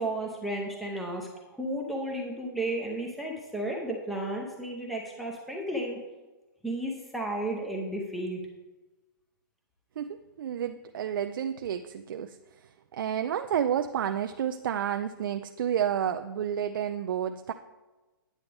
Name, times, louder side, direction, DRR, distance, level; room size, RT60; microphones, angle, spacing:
voice 1, 0.0-6.0 6.6-8.4, right 1 dB, ahead, 0 dB, 0.7 m, -33 dB
voice 2, 10.0-17.5, right 9 dB, 65° right, 7 dB, 0.4 m, -30 dB
9.6 x 8.1 x 3.5 m, 1.1 s
hypercardioid pair, 155°, 12 cm